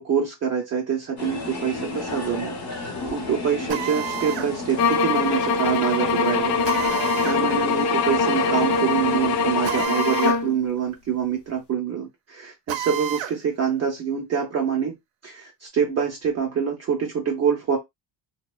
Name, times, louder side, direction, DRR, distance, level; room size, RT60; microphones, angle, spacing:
voice 1, 0.0-6.7 7.0-14.9 15.2-17.8, right 7 dB, 35° right, 0.6 m, -26 dB
sound 1, 1.2-9.9, left 2 dB, 40° left, 1.0 m, -32 dB
Drill, 3.7-4.5 6.6-7.4 9.6-10.4 10.8-10.9 12.7-13.4, right 11 dB, 80° right, 0.6 m, -30 dB
sound 2, 4.8-10.5, left 4 dB, 65° left, 0.6 m, -23 dB
2.8 x 2.1 x 2.2 m
cardioid pair, 145°, 45 cm